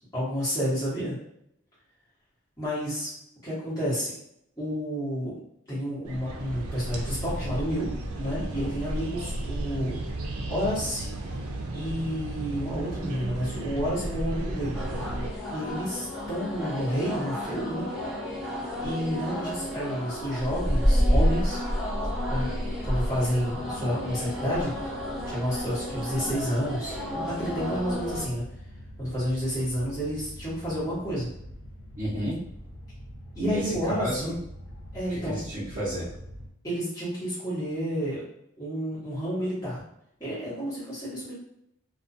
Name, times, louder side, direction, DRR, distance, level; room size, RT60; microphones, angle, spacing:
voice 1, 0.1-1.2 2.6-3.1 3.4-4.1 4.6-5.3 5.7-9.9 10.5-11.1 11.7-14.8 15.5-17.9 18.8-21.6 22.3-22.5 22.8-24.9 25.2-28.4 29.0-31.3 33.3-34.4 34.9-35.4 36.6-38.2 38.6-39.8 40.2-41.3, equal, 15° left, -12 dB, 1.1 m, -30 dB
sound 1, 6.0-15.3, right 1 dB, 85° right, 0.4 m, -34 dB
sound 2, 14.7-28.2, equal, ahead, 0.6 m, -30 dB
sound 3, 22.0-36.5, equal, 70° left, 0.4 m, -44 dB
voice 2, 32.0-32.4 33.4-34.3 35.1-36.1, right 1 dB, 40° right, -11 dB, 0.7 m, -31 dB
2.4 x 2.2 x 2.6 m, 0.76 s
head